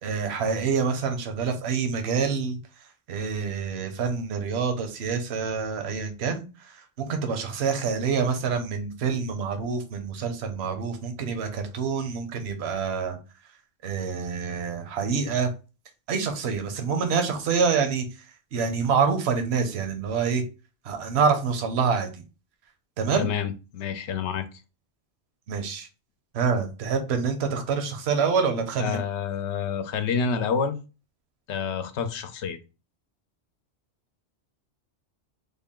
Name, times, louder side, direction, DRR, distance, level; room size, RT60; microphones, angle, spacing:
voice 1, 0.0-2.6 3.1-13.2 13.8-15.5 16.1-18.0 18.5-20.4 20.8-22.2 23.0-23.3 25.5-25.9 26.3-29.0, right 5 dB, 70° right, 6 dB, 1.0 m, -26 dB
voice 2, 23.2-24.5 28.8-30.8 31.5-32.6, left 6 dB, 80° left, 9 dB, 0.9 m, -28 dB
3.5 x 2.2 x 3.6 m, 0.31 s
omnidirectional pair, 1.2 m